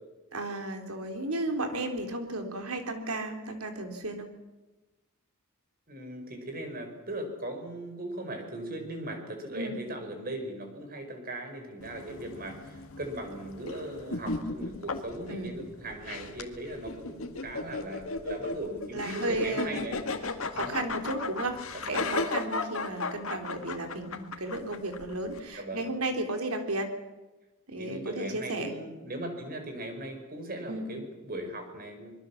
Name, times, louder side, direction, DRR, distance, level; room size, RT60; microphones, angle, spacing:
voice 1, 0.3-4.3 9.6-9.8 15.3-15.6 18.9-19.8 20.5-21.6 21.9-26.9 27.7-28.7 30.7-30.9, right 2 dB, 80° right, 6 dB, 3.5 m, -34 dB
voice 2, 5.9-20.0 20.5-20.8 21.7-22.1 25.5-25.9 27.7-32.1, right 1 dB, 45° right, 5 dB, 5.3 m, -38 dB
sound 1, 11.8-25.4, left 3 dB, 65° left, 2.0 m, -36 dB
25.0 x 22.5 x 7.3 m, 1.1 s
head